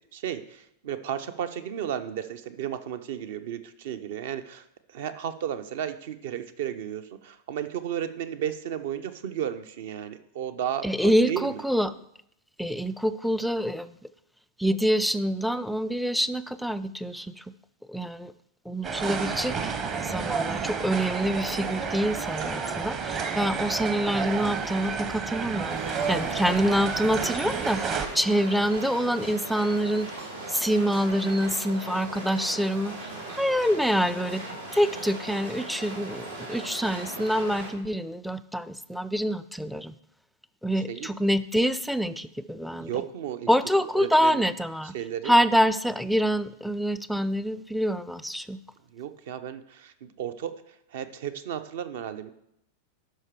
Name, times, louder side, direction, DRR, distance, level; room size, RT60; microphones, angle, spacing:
voice 1, 0.1-11.6 40.9-41.1 42.6-43.5 43.9-44.5 44.9-45.4 48.9-52.3, right 10 dB, 55° right, 11 dB, 0.7 m, -34 dB
voice 2, 10.8-11.9 12.6-14.0 14.6-17.4 17.9-18.3 18.7-30.1 30.5-34.4 34.7-39.9 40.6-42.9 43.5-44.9 45.2-48.6, equal, ahead, 15 dB, 0.4 m, -26 dB
sound 1, 18.8-28.1, right 5 dB, 30° right, 1.0 m, -30 dB
sound 2, 25.7-37.7, right 2 dB, 75° right, 2.4 m, -38 dB
12.0 x 5.2 x 4.8 m, 0.77 s
figure-of-eight pair, 90°, 0 cm